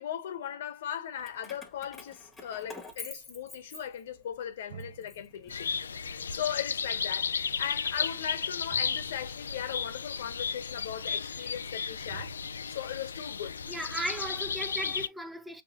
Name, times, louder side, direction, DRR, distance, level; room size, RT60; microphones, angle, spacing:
voice 1, 0.0-12.4 12.7-13.6, left 9 dB, 65° left, 1.2 m, -38 dB
Keys jangling, 1.2-4.4 4.8-6.1, left 3 dB, 10° left, 1.3 m, -47 dB
sound 1, 4.1-4.2 4.7-11.8 12.1-14.1, right 7 dB, 75° right, 0.7 m, -52 dB
sound 2, 5.5-15.1, left 6 dB, 85° left, 0.4 m, -34 dB
voice 2, 13.7-15.6, right 1 dB, 5° right, 0.6 m, -36 dB
6.2 x 2.3 x 2.4 m
hypercardioid pair, 125°, 0 cm